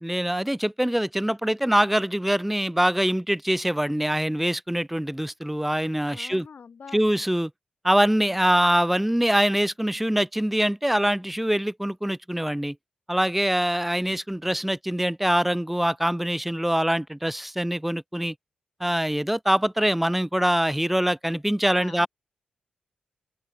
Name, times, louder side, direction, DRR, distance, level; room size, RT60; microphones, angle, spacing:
voice 1, 0.0-6.5 6.9-7.5 7.8-12.8 13.1-18.3 18.8-22.1, equal, 5° right, 0.3 m, -24 dB
voice 2, 6.1-7.0 21.8-22.1, left 6 dB, 55° left, 3.4 m, -44 dB
open air
supercardioid pair, 45°, 3 cm